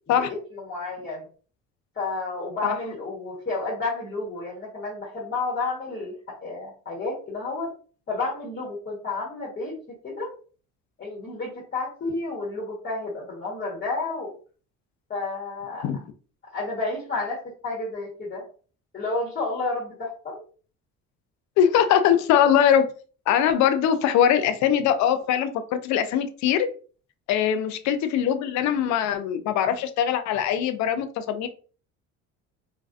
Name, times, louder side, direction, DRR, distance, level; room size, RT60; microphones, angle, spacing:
voice 1, 0.1-1.3 1.9-7.7 8.1-9.8 10.0-10.3 11.0-14.3 15.1-15.9 16.5-18.4 18.9-20.4 27.3-27.5, left 3 dB, 30° left, 1.1 m, -31 dB
voice 2, 21.6-22.9 23.3-25.5 25.8-26.7 27.3-31.5, left 9 dB, 65° left, 0.5 m, -21 dB
2.4 x 2.2 x 2.3 m
supercardioid pair, 85°, 31 cm